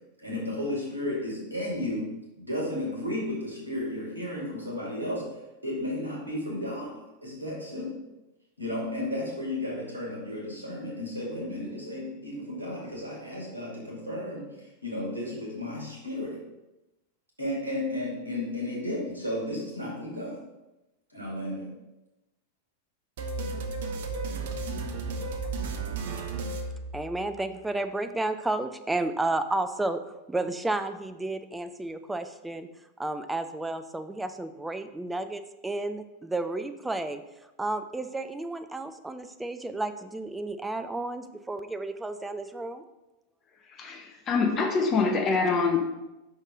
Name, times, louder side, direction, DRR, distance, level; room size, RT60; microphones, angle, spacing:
voice 1, 0.2-2.1 2.4-5.2 5.6-7.9 8.6-16.4 17.4-20.4 21.1-21.7, left 1 dB, 90° left, -4 dB, 2.2 m, -33 dB
sound 1, 23.2-27.5, right 3 dB, 55° right, 0.7 m, -34 dB
voice 2, 26.9-30.0 30.3-32.7 33.0-37.2 37.6-42.8, right 2 dB, 5° right, 8 dB, 0.4 m, -32 dB
voice 3, 43.8-45.8, left 4 dB, 30° left, 4 dB, 0.8 m, -25 dB
5.4 x 5.4 x 3.6 m, 0.98 s
figure-of-eight pair, 90°, 0 cm